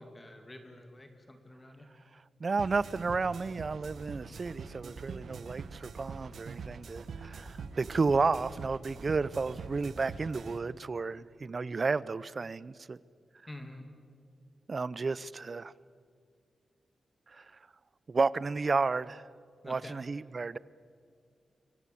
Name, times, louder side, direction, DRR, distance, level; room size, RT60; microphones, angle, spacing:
voice 1, 0.0-1.9 13.5-13.8 19.6-20.0, left 1 dB, 15° left, 2.5 m, -48 dB
voice 2, 2.4-13.0 14.7-15.7 17.3-17.5 18.1-19.3 19.6-20.6, right 4 dB, 35° right, 0.6 m, -32 dB
sound 1, 2.6-10.6, right 5 dB, 70° right, 1.4 m, -44 dB
25.0 x 25.0 x 8.6 m
wide cardioid pair, 150°, 0 cm